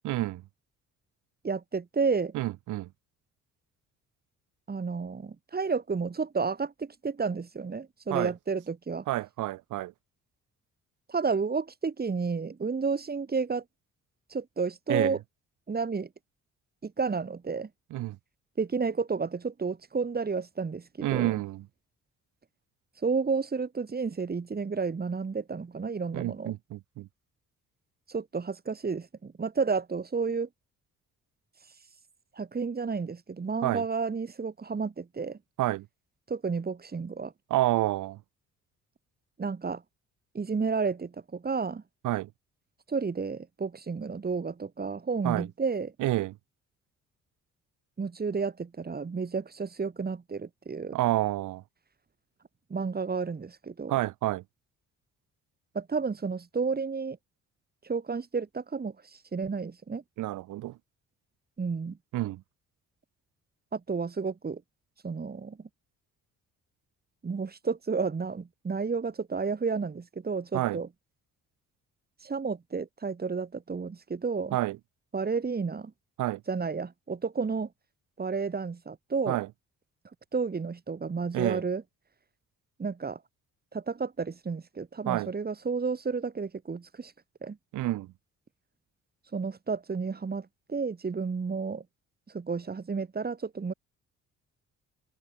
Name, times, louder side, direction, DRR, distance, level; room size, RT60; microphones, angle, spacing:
voice 1, 0.0-0.4 2.3-2.9 8.1-8.3 9.1-9.9 14.9-15.2 17.9-18.2 21.0-21.6 26.1-27.1 33.6-33.8 35.6-35.9 37.5-38.2 42.0-42.3 45.2-45.5 46.0-46.3 50.9-51.6 53.9-54.4 60.2-60.8 62.1-62.4 70.5-70.8 74.5-74.8 76.2-76.4 79.3-79.5 81.3-81.6 85.1-85.3 87.7-88.1, right 16 dB, 90° right, 2.1 m, -29 dB
voice 2, 1.4-2.3 4.7-9.0 11.1-13.6 14.3-15.2 15.7-16.1 16.8-17.7 18.6-21.3 23.0-26.5 28.1-30.5 32.4-35.4 36.3-37.3 39.4-39.8 40.3-41.8 42.9-45.9 48.0-51.0 52.7-53.9 55.7-57.2 57.8-58.9 59.3-60.0 61.6-62.0 63.7-64.6 65.0-65.6 67.2-70.9 72.2-74.6 75.1-75.9 76.5-77.7 78.2-79.4 80.3-81.8 82.8-83.2 83.7-87.1 87.4-87.6 89.3-91.8 92.3-93.7, right 5 dB, 30° right, 3.1 m, -31 dB
cardioid pair, 90°, 30 cm